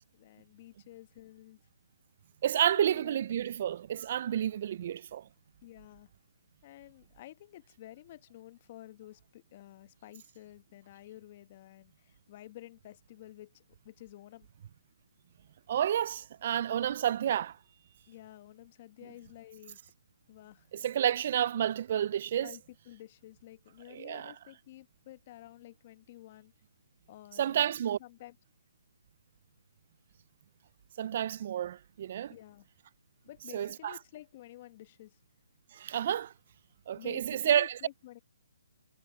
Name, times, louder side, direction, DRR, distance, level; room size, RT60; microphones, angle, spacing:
voice 1, 0.1-1.6 2.7-3.2 5.6-6.1 6.6-14.5 18.1-19.8 20.3-20.7 22.4-22.6 22.9-26.5 27.1-27.7 28.0-28.3 32.3-32.7 33.2-35.2 36.9-38.2, left 15 dB, 35° left, 1.3 m, -51 dB
voice 2, 2.4-5.3 15.7-17.6 20.7-22.6 23.9-24.3 27.4-28.0 31.0-32.3 33.5-34.0 35.7-36.3 36.9-37.8, right 10 dB, 45° right, 0.4 m, -30 dB
hypercardioid pair, 150°, 0 cm